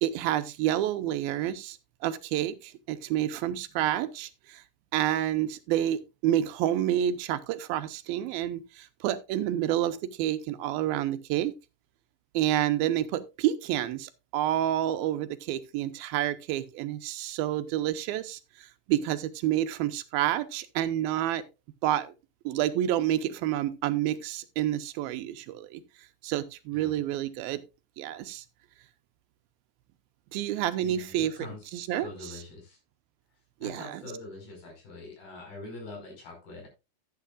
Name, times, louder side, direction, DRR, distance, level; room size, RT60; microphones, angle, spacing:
voice 1, 0.0-1.8 2.0-4.6 4.9-11.5 12.3-18.4 18.9-21.4 21.8-22.1 22.5-25.8 26.2-27.6 28.0-28.4 30.3-31.5 31.7-32.4 33.6-34.0, right 12 dB, 85° right, 2.6 m, -29 dB
voice 2, 30.8-32.8 33.6-36.7, left 2 dB, 80° left, 7.0 m, -44 dB
14.0 x 8.9 x 2.4 m
omnidirectional pair, 4.2 m